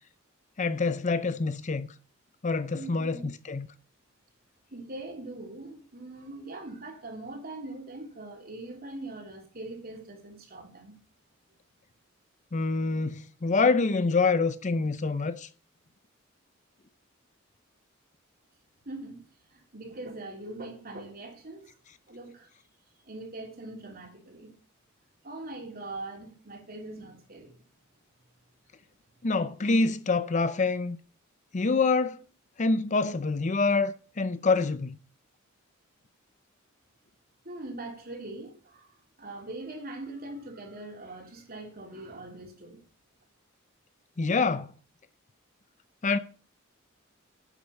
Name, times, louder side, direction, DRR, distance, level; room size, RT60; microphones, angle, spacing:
voice 1, 0.6-1.9 2.4-3.7 12.5-15.5 29.2-31.0 31.5-32.2 32.6-35.0 44.2-44.7 46.0-46.2, left 4 dB, 35° left, 0.6 m, -26 dB
voice 2, 2.7-3.3 4.7-10.9 18.8-19.2 19.5-21.7 22.1-22.5 23.0-24.5 25.2-27.6 37.4-42.8, right 2 dB, 45° right, 3.3 m, -42 dB
10.0 x 8.5 x 5.4 m
head